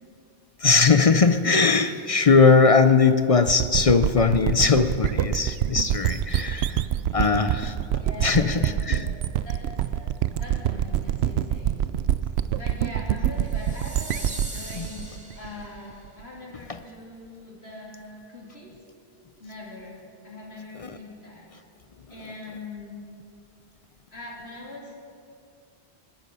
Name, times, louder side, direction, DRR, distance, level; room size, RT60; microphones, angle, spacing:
voice 1, 0.6-6.8 7.1-7.8 8.2-9.1 14.8-14.9 16.7-16.8 20.8-20.9, left 4 dB, 45° left, 10 dB, 0.5 m, -20 dB
sound 1, 3.5-16.1, right 10 dB, 80° right, 0.8 m, -26 dB
voice 2, 8.0-9.1 9.4-10.1 10.4-11.8 12.5-18.7 19.4-20.0 20.2-21.5 22.1-23.0 24.1-24.9, left 2 dB, 80° left, -3 dB, 3.5 m, -42 dB
sound 2, 13.4-15.9, equal, 5° right, 2.2 m, -41 dB
21.5 x 12.5 x 5.5 m, 2.4 s
omnidirectional pair, 1.1 m